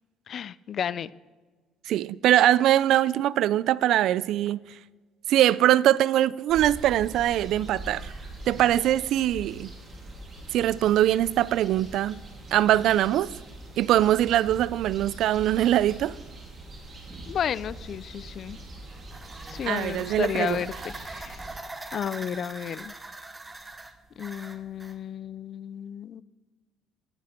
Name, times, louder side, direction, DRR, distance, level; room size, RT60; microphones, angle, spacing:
voice 1, 0.3-1.1 17.3-18.6 19.5-21.4 21.9-23.0 24.2-26.2, left 8 dB, 40° left, 0.4 m, -32 dB
voice 2, 1.9-4.6 5.3-8.1 8.5-9.7 10.5-12.2 12.5-13.3 13.8-16.1 19.7-20.6, right 12 dB, 60° right, 0.4 m, -22 dB
sound 1, 6.5-21.6, right 2 dB, 30° right, 3.4 m, -43 dB
sound 2, 18.7-25.0, right 2 dB, 15° right, 1.0 m, -42 dB
17.0 x 13.0 x 4.4 m
cardioid pair, 150°, 0 cm